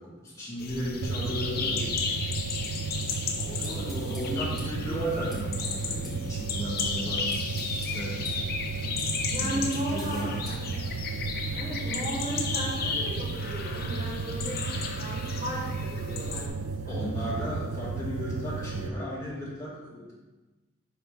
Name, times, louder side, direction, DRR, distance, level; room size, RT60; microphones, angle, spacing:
voice 1, 0.0-2.2 3.4-7.3 7.7-8.2 9.4-10.4 16.9-20.1, equal, 15° left, -7 dB, 2.1 m, -35 dB
sound 1, 0.6-16.5, left 5 dB, 55° left, 0.8 m, -34 dB
sound 2, 1.0-18.9, right 4 dB, 85° right, 0.4 m, -34 dB
sound 3, 2.9-11.0, left 1 dB, ahead, 1.8 m, -49 dB
voice 2, 3.6-4.6 9.3-10.7 11.4-14.7 14.9-17.5, equal, 30° right, -4 dB, 1.3 m, -36 dB
9.7 x 4.3 x 3.5 m, 1.2 s
head